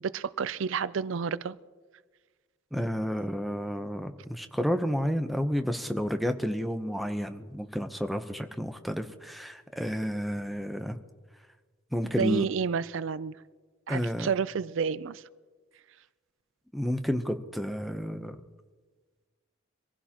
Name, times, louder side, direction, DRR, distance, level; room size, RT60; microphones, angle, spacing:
voice 1, 0.0-1.6 12.2-13.4 13.9-15.2, right 6 dB, 70° right, 0.4 m, -30 dB
voice 2, 2.7-11.0 11.9-12.4 13.9-14.3 16.7-18.4, equal, ahead, 0.7 m, -31 dB
25.0 x 15.5 x 2.9 m
head